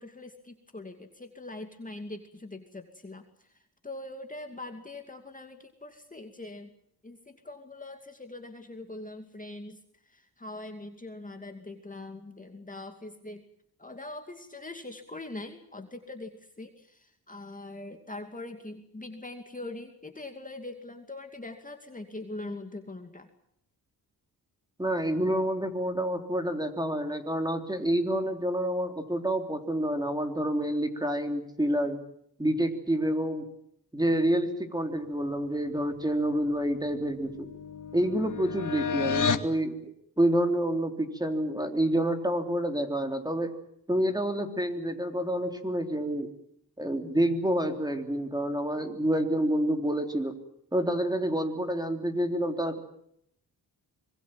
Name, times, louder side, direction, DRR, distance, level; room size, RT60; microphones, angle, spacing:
voice 1, 0.0-6.7 7.0-13.4 13.8-23.3, left 2 dB, 20° left, 5 dB, 2.5 m, -42 dB
voice 2, 24.8-32.0 32.4-33.5 33.9-37.5 37.9-43.5 43.9-46.3 46.8-50.3 50.7-52.8, right 1 dB, 10° right, 5 dB, 3.6 m, -28 dB
sound 1, 36.3-39.5, left 6 dB, 50° left, 1.7 m, -32 dB
25.0 x 22.0 x 7.6 m, 0.72 s
cardioid pair, 85°, 39 cm